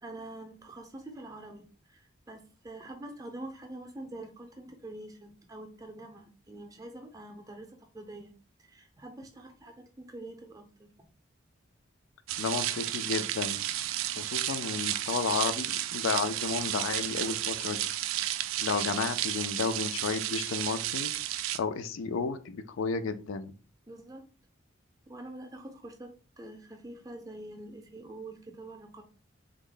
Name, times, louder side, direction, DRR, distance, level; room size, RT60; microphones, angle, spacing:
voice 1, 0.0-8.3 8.7-10.9 23.9-24.3 25.1-29.0, right 1 dB, 20° right, 4 dB, 0.5 m, -45 dB
sound 1, 12.3-21.6, right 13 dB, 85° right, 0.3 m, -32 dB
voice 2, 12.4-13.6 14.2-17.9 18.6-21.1 21.5-23.5, left 5 dB, 80° left, 10 dB, 0.4 m, -32 dB
3.5 x 2.1 x 3.7 m, 0.37 s
head